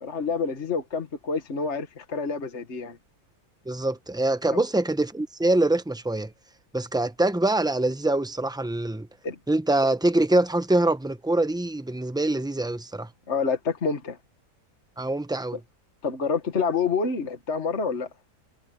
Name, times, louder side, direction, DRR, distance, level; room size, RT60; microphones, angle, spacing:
voice 1, 0.0-3.0 9.2-9.4 13.3-14.2 16.0-18.1, left 5 dB, 45° left, 1.9 m, -27 dB
voice 2, 3.7-6.3 6.7-9.1 9.5-13.1 15.0-15.6, right 2 dB, 5° right, 0.5 m, -24 dB
omnidirectional pair, 1.7 m